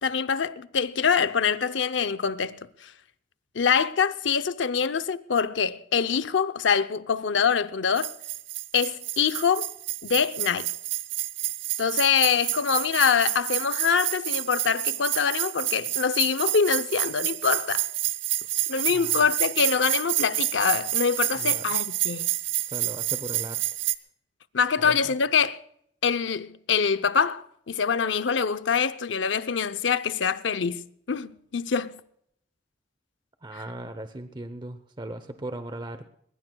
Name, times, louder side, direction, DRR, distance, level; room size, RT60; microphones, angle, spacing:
voice 1, 0.0-2.9 3.5-8.1 8.7-9.7 10.0-10.7 11.8-17.9 18.7-22.3 24.5-25.6 26.0-32.0 33.5-33.6, left 6 dB, 75° left, 0.7 m, -25 dB
sound 1, 8.0-24.0, right 15 dB, 85° right, 0.9 m, -29 dB
voice 2, 22.6-23.6 24.8-25.1 33.4-36.1, right 1 dB, 25° right, 0.8 m, -38 dB
22.0 x 21.5 x 2.3 m
head